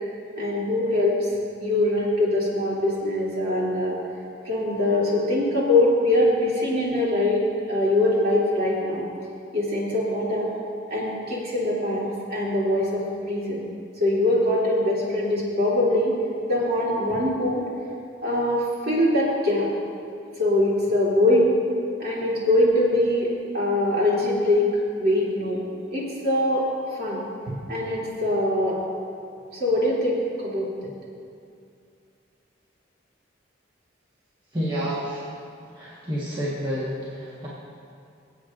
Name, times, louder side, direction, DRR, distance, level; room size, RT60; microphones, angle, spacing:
voice 1, 0.4-1.3 1.6-4.0 4.4-9.1 9.5-10.5 10.9-13.6 14.0-16.2 16.5-17.6 18.2-19.7 20.4-21.6 22.0-24.7 25.0-25.6 25.9-26.7 26.9-28.8 29.5-30.7, left 1 dB, 50° right, -7 dB, 3.0 m, -23 dB
voice 2, 34.5-35.3 35.7-37.5, equal, 25° right, -9 dB, 1.5 m, -29 dB
23.5 x 8.1 x 2.6 m, 2.4 s
head